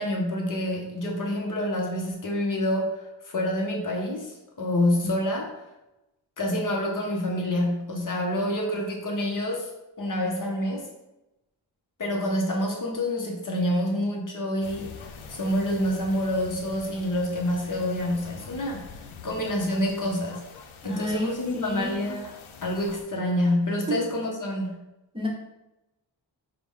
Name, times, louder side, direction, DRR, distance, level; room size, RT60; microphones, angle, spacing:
voice 1, 0.0-5.5 6.4-9.7 10.0-10.9 12.0-18.9 19.2-20.5 20.8-22.3 22.6-24.8, left 1 dB, 45° left, 0 dB, 0.6 m, -27 dB
sound 1, 14.6-23.0, left 5 dB, 85° left, 0.6 m, -45 dB
voice 2, 20.8-22.1 23.9-24.0 25.1-25.3, left 1 dB, 10° right, -5 dB, 0.6 m, -31 dB
4.7 x 2.0 x 3.5 m, 0.96 s
wide cardioid pair, 155°, 47 cm